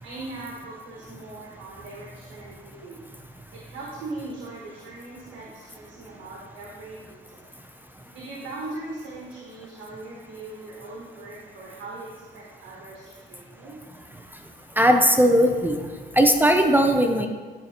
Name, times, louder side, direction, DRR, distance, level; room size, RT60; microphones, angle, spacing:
voice 1, 0.0-3.0 3.5-7.5 8.1-13.8 16.9-17.0, right 2 dB, 75° right, -4 dB, 1.3 m, -40 dB
voice 2, 14.8-15.8 16.1-17.3, equal, 10° right, 5 dB, 0.5 m, -18 dB
11.5 x 4.0 x 2.9 m, 1.5 s
cardioid pair, 90°, 20 cm